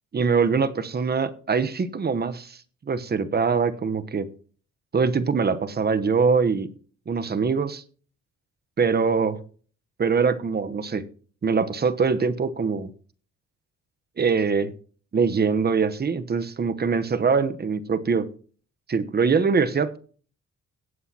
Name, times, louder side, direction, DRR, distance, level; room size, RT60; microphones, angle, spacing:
voice 1, 0.1-2.6 2.9-4.3 4.9-6.7 7.1-7.8 8.8-9.4 10.0-11.0 11.4-12.9 14.2-14.7 15.1-18.3 18.9-20.0, right 5 dB, 35° right, 1.0 m, -23 dB
17.0 x 8.2 x 2.9 m
cardioid pair, 90°, 30 cm